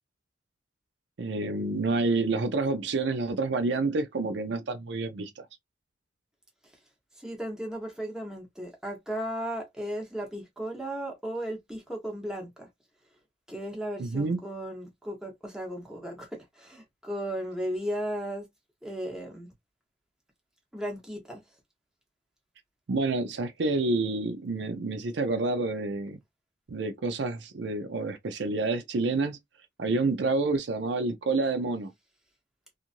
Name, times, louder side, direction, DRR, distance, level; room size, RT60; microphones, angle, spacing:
voice 1, 1.2-5.4 14.0-14.4 22.9-26.2 26.7-29.4 29.8-31.9, right 3 dB, 65° right, 0.5 m, -28 dB
voice 2, 7.2-12.7 13.5-18.5 18.8-19.5 20.7-21.4, equal, 5° right, 1.0 m, -35 dB
2.9 x 2.5 x 2.5 m
head